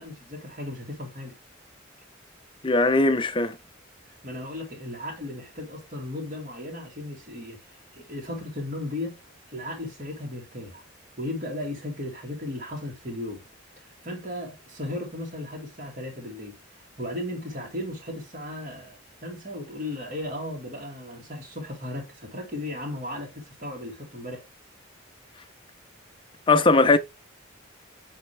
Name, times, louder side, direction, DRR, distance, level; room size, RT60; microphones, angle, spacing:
voice 1, 0.0-1.4 4.2-7.6 7.9-9.2 9.5-10.8 11.2-13.4 13.8-16.5 17.0-24.4, left 1 dB, 40° right, 2.2 m, -36 dB
voice 2, 2.6-3.6 26.5-27.0, left 3 dB, 25° left, 0.5 m, -19 dB
8.6 x 3.4 x 3.3 m
head